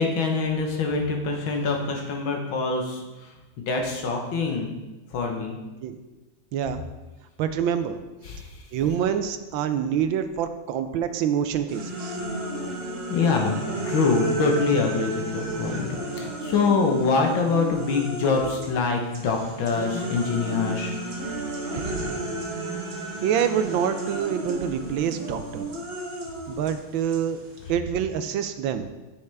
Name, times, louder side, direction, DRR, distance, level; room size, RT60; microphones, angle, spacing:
voice 1, 0.0-4.7 5.1-5.6 8.2-8.6 13.1-13.6 13.9-21.0, left 4 dB, 75° left, 2 dB, 1.9 m, -25 dB
voice 2, 6.5-6.8 7.4-8.0 8.7-12.2 21.7-22.4 23.2-25.7 26.5-27.4 27.7-28.9, right 8 dB, 75° right, 9 dB, 1.4 m, -26 dB
sound 1, 11.7-18.8 19.1-27.7, right 1 dB, 35° right, 1.1 m, -33 dB
9.6 x 7.0 x 3.5 m, 1.1 s
omnidirectional pair, 2.2 m